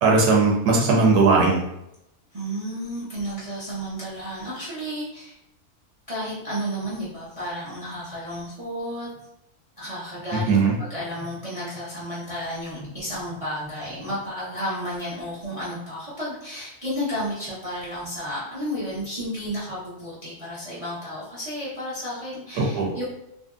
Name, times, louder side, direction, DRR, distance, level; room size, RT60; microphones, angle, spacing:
voice 1, 0.0-1.6 10.3-10.7 22.6-22.9, right 3 dB, 85° right, -2 dB, 1.3 m, -19 dB
voice 2, 2.3-5.3 6.1-9.1 9.8-23.0, equal, 35° right, -8 dB, 0.5 m, -32 dB
2.7 x 2.6 x 2.3 m, 0.83 s
omnidirectional pair, 1.6 m